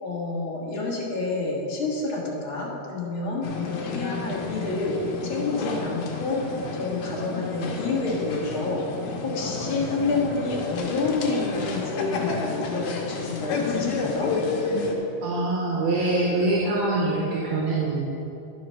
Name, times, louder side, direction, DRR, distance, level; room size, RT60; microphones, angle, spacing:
voice 1, 0.0-8.9 9.2-14.3, left 3 dB, 50° left, -4 dB, 2.0 m, -28 dB
sound 1, 3.4-15.0, left 4 dB, 75° left, 2.2 m, -31 dB
voice 2, 15.2-18.0, right 2 dB, 75° right, -4 dB, 2.2 m, -24 dB
11.0 x 4.8 x 5.6 m, 2.9 s
omnidirectional pair, 3.4 m